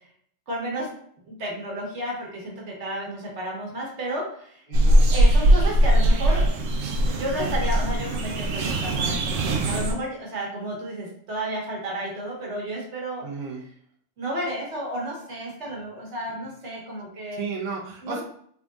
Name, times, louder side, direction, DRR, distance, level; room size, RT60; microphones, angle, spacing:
voice 1, 0.5-0.9 1.3-4.6 5.1-6.5 7.0-13.2 14.2-17.4 18.0-18.2, right 1 dB, 65° right, -2 dB, 1.4 m, -32 dB
voice 2, 4.7-5.1 13.2-13.6 17.3-18.2, right 5 dB, 45° right, -3 dB, 0.7 m, -33 dB
sound 1, 4.7-9.9, right 1 dB, 85° right, 1.0 m, -20 dB
3.9 x 3.4 x 2.3 m, 0.64 s
omnidirectional pair, 1.3 m